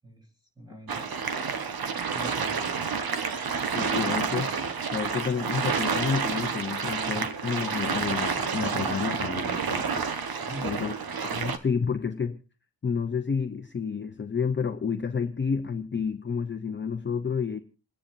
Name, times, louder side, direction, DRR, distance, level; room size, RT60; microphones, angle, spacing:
voice 1, 0.6-1.6 2.1-2.8 10.5-11.0, equal, 10° right, 3.7 m, -43 dB
sound 1, 0.9-11.6, right 5 dB, 65° right, 1.3 m, -29 dB
voice 2, 3.7-4.5 4.9-10.1 10.6-10.9 11.3-12.4 12.8-17.6, left 6 dB, 30° left, 0.6 m, -30 dB
28.5 x 10.0 x 2.6 m
wide cardioid pair, 120°, 40 cm